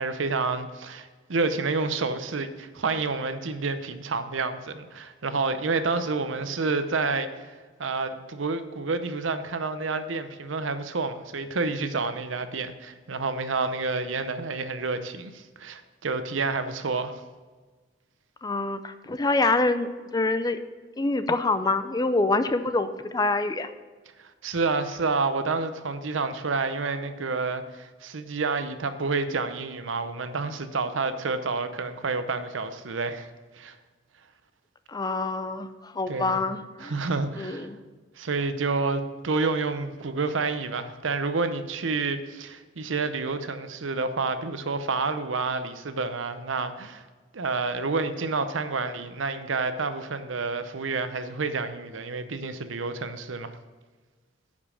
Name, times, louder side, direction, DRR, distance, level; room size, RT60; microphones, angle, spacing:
voice 1, 0.0-7.5 7.8-17.2 24.2-33.3 33.5-33.8 36.1-36.4 36.8-37.7 38.2-47.0 47.3-53.5, right 4 dB, 85° right, 10 dB, 0.7 m, -29 dB
voice 2, 18.4-20.6 21.0-23.7 34.9-36.9 37.4-37.8, left 3 dB, 20° left, 11 dB, 0.5 m, -26 dB
9.8 x 5.4 x 6.3 m, 1.4 s
head